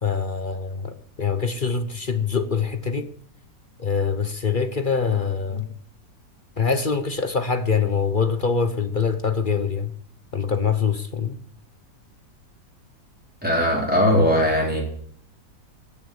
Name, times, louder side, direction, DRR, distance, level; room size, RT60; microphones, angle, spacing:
voice 1, 0.0-3.1 3.8-5.7 6.6-9.9 10.3-11.4, left 5 dB, 40° left, 0.8 m, -24 dB
voice 2, 13.4-14.8, equal, 5° right, 3.8 m, -19 dB
14.5 x 7.1 x 8.9 m
omnidirectional pair, 1.9 m